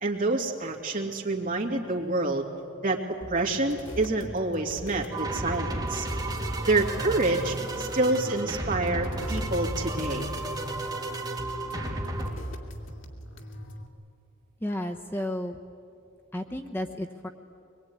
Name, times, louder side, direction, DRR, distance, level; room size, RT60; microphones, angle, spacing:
voice 1, 0.0-2.5 2.8-6.1 6.7-10.3, right 2 dB, 45° right, 0 dB, 2.7 m, -27 dB
sound 1, 3.2-13.9, equal, 80° left, 2.5 m, -42 dB
sound 2, 5.1-12.3, right 1 dB, 20° right, 2.7 m, -33 dB
voice 2, 14.6-15.6 16.3-17.3, left 1 dB, 10° left, 3 dB, 0.9 m, -32 dB
23.5 x 22.0 x 9.7 m, 2.6 s
head